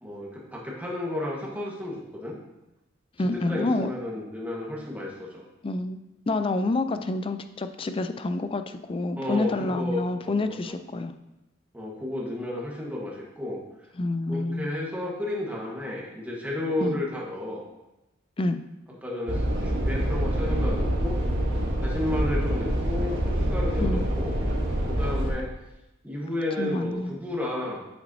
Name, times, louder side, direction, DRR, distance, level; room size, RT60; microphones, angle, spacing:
voice 1, 0.0-2.4 3.3-5.4 9.2-10.7 11.7-13.6 14.3-17.6 19.0-21.2 21.8-24.3 24.9-25.5 26.0-27.9, left 1 dB, 10° right, -4 dB, 1.3 m, -32 dB
voice 2, 3.2-3.9 5.6-6.0 6.3-11.1 14.0-14.7 16.8-17.0 18.4-18.6 23.8-24.0 26.6-27.2, left 2 dB, 25° left, 9 dB, 0.3 m, -28 dB
sound 1, 19.3-25.3, equal, 60° right, 1.3 m, -26 dB
8.4 x 5.9 x 2.7 m, 0.97 s
head